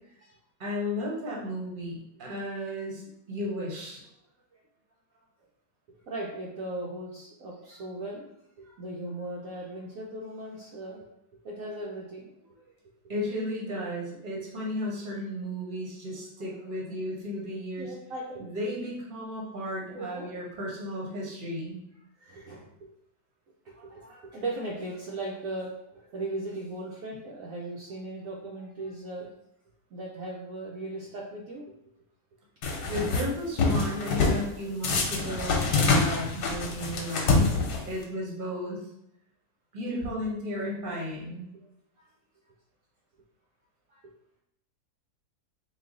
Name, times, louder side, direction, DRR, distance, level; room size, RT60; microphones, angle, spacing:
voice 1, 0.6-3.0 3.3-4.0 13.1-17.9 18.4-21.8 32.9-37.6 37.8-38.8 39.7-41.5, equal, 35° right, -3 dB, 1.1 m, -34 dB
voice 2, 5.9-8.3 8.6-11.0 11.4-12.6 17.8-18.5 19.9-20.3 22.2-22.7 23.6-29.3 29.9-31.7 42.0-42.1 43.9-44.0, right 2 dB, 65° right, -4 dB, 1.0 m, -38 dB
sound 1, 32.6-33.2 33.6-34.4 34.8-38.0, left 3 dB, 85° left, 1.3 m, -25 dB
4.0 x 2.7 x 3.7 m, 0.80 s
omnidirectional pair, 1.7 m